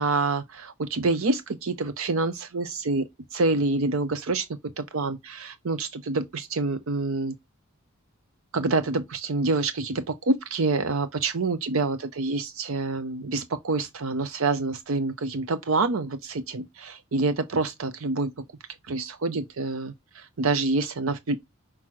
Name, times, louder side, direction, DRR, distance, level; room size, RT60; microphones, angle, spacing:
voice 1, 0.0-4.5 4.8-7.4 8.5-18.4 18.9-21.4, right 3 dB, 65° right, 0.6 m, -27 dB
5.9 x 4.7 x 6.3 m
head